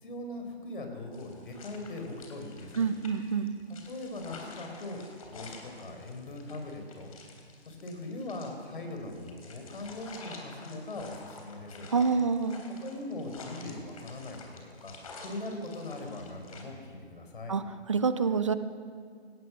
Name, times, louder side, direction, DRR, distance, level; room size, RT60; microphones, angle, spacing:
voice 1, 0.0-2.9 3.7-5.0 5.3-7.1 7.6-11.9 12.8-15.0 15.2-17.6, left 2 dB, 50° left, 4 dB, 4.6 m, -40 dB
sound 1, 1.1-16.6, left 4 dB, 35° left, 3.3 m, -50 dB
voice 2, 2.8-3.5 11.9-12.6 17.5-17.6 17.9-18.5, right 5 dB, 30° right, 12 dB, 0.8 m, -27 dB
23.0 x 18.0 x 6.3 m, 2.1 s
hypercardioid pair, 165°, 33 cm